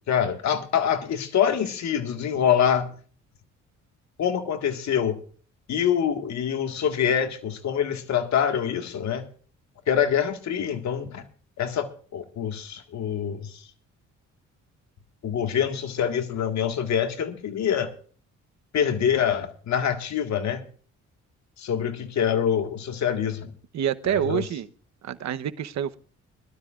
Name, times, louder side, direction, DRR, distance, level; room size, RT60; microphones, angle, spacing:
voice 1, 0.1-2.9 4.2-5.2 5.7-9.3 9.9-11.2 11.6-13.7 15.2-17.9 18.7-20.7 21.6-23.5 24.1-24.4, left 8 dB, 65° left, 1.8 m, -25 dB
voice 2, 23.7-24.7 25.0-26.0, right 10 dB, 65° right, 1.0 m, -27 dB
22.0 x 12.5 x 2.5 m
cardioid pair, 90°, 30 cm